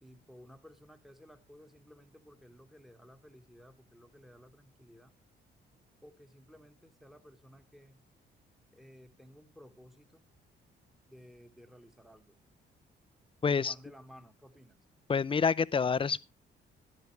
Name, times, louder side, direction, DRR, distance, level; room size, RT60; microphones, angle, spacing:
voice 1, 0.0-5.1 6.0-8.0 8.7-10.2 11.1-12.4 13.6-14.8, equal, ahead, 1.4 m, -55 dB
voice 2, 13.4-13.7 15.1-16.2, left 5 dB, 25° left, 0.5 m, -27 dB
13.0 x 11.0 x 3.2 m
cardioid pair, 90°, 20 cm